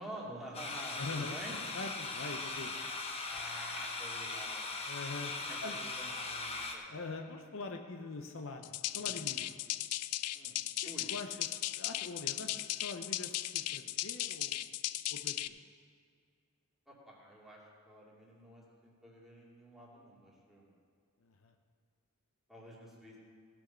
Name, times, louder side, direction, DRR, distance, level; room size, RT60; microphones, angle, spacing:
voice 1, 0.0-1.6 3.3-4.7 5.4-6.8 7.1-7.2 8.9-9.2 10.3-10.6 10.8-11.1 16.9-20.7 22.5-23.2, equal, ahead, -6 dB, 2.4 m, -49 dB
sound 1, 0.5-6.7, left 3 dB, 25° left, 1.0 m, -39 dB
voice 2, 1.0-2.8 4.9-5.3 5.6-5.8 6.9-9.6 10.8-14.8 15.1-15.6 21.2-21.5, left 3 dB, 60° left, 5 dB, 0.7 m, -44 dB
sound 2, 8.6-15.5, left 15 dB, 90° left, 0.4 m, -37 dB
17.0 x 6.2 x 5.7 m, 2.1 s
head